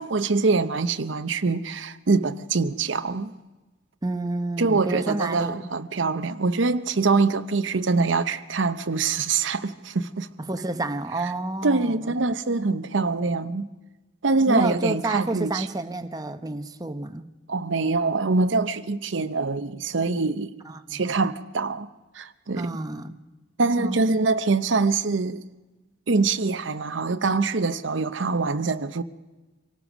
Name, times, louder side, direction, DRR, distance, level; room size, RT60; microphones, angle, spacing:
voice 1, 0.0-3.3 4.6-10.3 11.6-13.7 14.2-15.7 17.5-20.5 20.9-21.9 22.1-22.7 23.6-25.4 26.1-29.0, right 3 dB, 75° right, 0.8 m, -24 dB
voice 2, 4.0-5.7 10.5-12.2 14.5-17.2 20.6-21.0 22.6-23.2 23.8-24.1, right 2 dB, 20° right, 0.9 m, -30 dB
25.5 x 18.0 x 6.2 m
head